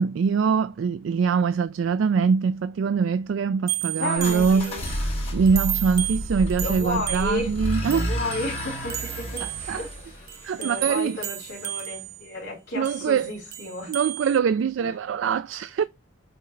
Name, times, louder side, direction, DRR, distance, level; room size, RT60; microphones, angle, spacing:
voice 1, 0.0-4.7 5.3-8.1 9.4-9.8 10.4-11.2 12.8-13.3 13.9-15.8, right 6 dB, 75° right, 0.3 m, -23 dB
sound 1, 3.7-5.1 5.5-12.3 12.9-14.4, right 13 dB, 45° right, 0.7 m, -34 dB
voice 2, 3.9-4.8 6.6-7.5 7.9-10.2 10.6-13.9 14.8-14.9, left 2 dB, 50° left, 3.3 m, -33 dB
sound 2, 4.2-11.1, equal, 30° left, 2.0 m, -31 dB
7.7 x 3.2 x 3.8 m
head